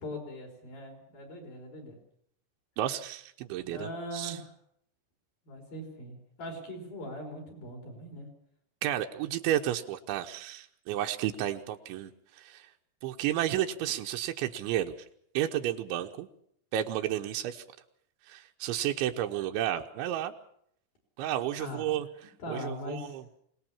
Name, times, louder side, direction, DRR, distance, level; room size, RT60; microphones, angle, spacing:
voice 1, 0.0-2.0 3.7-4.5 5.5-8.3 21.6-22.0 22.4-23.2, equal, 50° left, 1 dB, 6.7 m, -40 dB
voice 2, 2.8-4.4 8.8-12.1 12.4-12.7 13.0-15.0 15.4-16.3 16.7-17.6 18.3-20.3 21.2-22.1 22.5-23.2, right 12 dB, 90° right, 4 dB, 3.4 m, -32 dB
26.0 x 19.0 x 7.3 m, 0.69 s
omnidirectional pair, 5.2 m